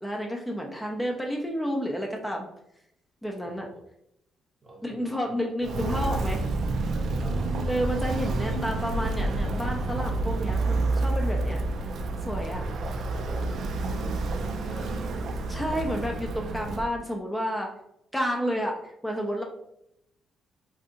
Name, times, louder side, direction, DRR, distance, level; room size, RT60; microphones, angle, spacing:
voice 1, 0.0-2.5 3.2-3.7 4.8-6.4 7.7-11.6 12.3-12.6 15.5-17.7 18.1-19.4, equal, 5° left, 0 dB, 0.5 m, -30 dB
voice 2, 3.4-3.8 4.6-5.4 6.8-7.5 8.3-8.6 12.5-13.0 13.3-13.4 14.0-15.3, right 1 dB, 35° right, 1 dB, 0.9 m, -44 dB
Walk footsteps, 5.6-16.9, right 2 dB, 65° right, 0.3 m, -29 dB
2.7 x 2.4 x 3.7 m, 0.79 s
cardioid pair, 90°, 0 cm